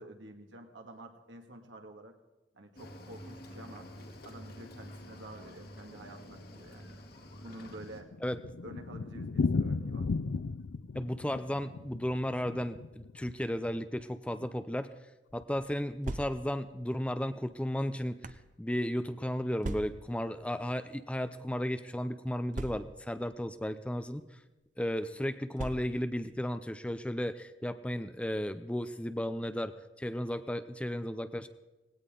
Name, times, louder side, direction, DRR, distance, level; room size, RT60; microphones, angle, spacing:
voice 1, 0.0-2.1 2.5-3.9 4.2-7.0 7.4-8.1 8.6-10.1, right 1 dB, 80° right, 3 dB, 2.2 m, -49 dB
Cricket / Waves surf, 2.8-8.0, left 1 dB, 55° left, 2.1 m, -48 dB
Thunder, 7.5-13.8 14.0-14.1 14.4-14.5 14.7-14.8 15.4-15.7, left 4 dB, 75° left, 0.5 m, -35 dB
voice 2, 10.9-14.9 15.3-18.2 18.6-24.3 24.8-31.5, equal, 5° left, 11 dB, 0.5 m, -34 dB
sound 1, 15.8-16.7 17.5-18.5 19.6-20.2 21.1-21.3 21.5-21.6 22.5-23.2 24.1-24.3 25.5-26.2, right 2 dB, 45° right, 0.7 m, -40 dB
19.0 x 16.5 x 3.9 m, 1.1 s
head